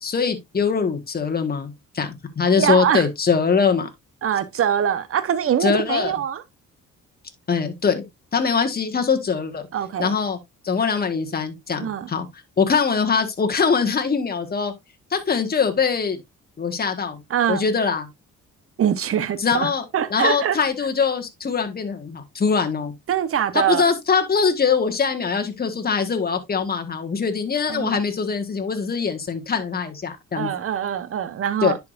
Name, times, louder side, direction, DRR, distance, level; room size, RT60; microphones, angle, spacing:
voice 1, 0.0-3.9 5.6-6.1 7.5-8.0 8.3-9.6 10.0-10.4 10.6-12.3 12.6-14.7 15.1-16.2 16.6-17.2 17.5-18.1 19.4-19.8 20.1-22.9 23.5-30.5 31.6-31.8, left 5 dB, 30° left, 1.4 m, -22 dB
voice 2, 2.6-3.1 4.2-6.4 9.7-10.1 11.8-12.1 17.3-17.6 18.8-20.6 23.1-23.8 27.7-28.0 30.4-31.8, right 9 dB, 45° right, 0.9 m, -23 dB
10.5 x 4.8 x 2.5 m
cardioid pair, 90°, 30 cm